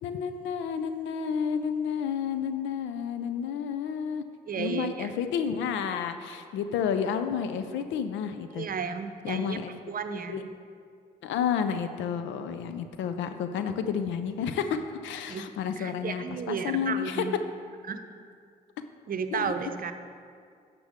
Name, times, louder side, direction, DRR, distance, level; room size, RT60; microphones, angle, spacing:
voice 1, 0.0-4.2 4.6-8.7 9.2-10.4 11.2-17.2 19.3-19.5, left 7 dB, 75° left, 9 dB, 0.6 m, -31 dB
voice 2, 4.5-5.1 8.5-9.6 9.9-10.5 15.3-17.3 17.9-18.0 19.1-19.9, right 6 dB, 45° right, 8 dB, 0.7 m, -33 dB
12.0 x 6.9 x 3.6 m, 2.2 s
hypercardioid pair, 45°, 20 cm